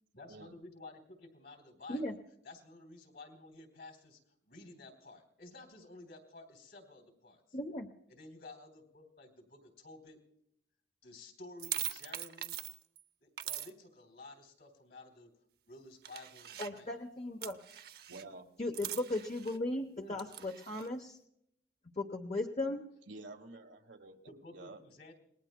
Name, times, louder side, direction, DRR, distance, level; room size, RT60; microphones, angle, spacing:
voice 1, 0.1-2.0 2.4-4.2 4.5-7.6 8.1-10.2 11.0-12.6 13.2-15.3 15.7-16.9 20.0-20.3 24.3-25.1, left 2 dB, 60° left, 5 dB, 3.3 m, -53 dB
voice 2, 7.5-7.9 16.6-17.6 18.6-21.2 22.0-22.8, left 2 dB, 40° left, 3 dB, 0.9 m, -37 dB
sound 1, 11.6-13.0 13.4-13.7 16.0-16.8 17.4-18.2 18.7-19.6 20.2-20.9, right 11 dB, 55° right, 0.7 m, -42 dB
voice 3, 18.1-18.5 23.1-24.2 24.5-24.8, right 2 dB, 85° right, 4 dB, 1.7 m, -49 dB
28.0 x 20.0 x 2.2 m, 0.75 s
head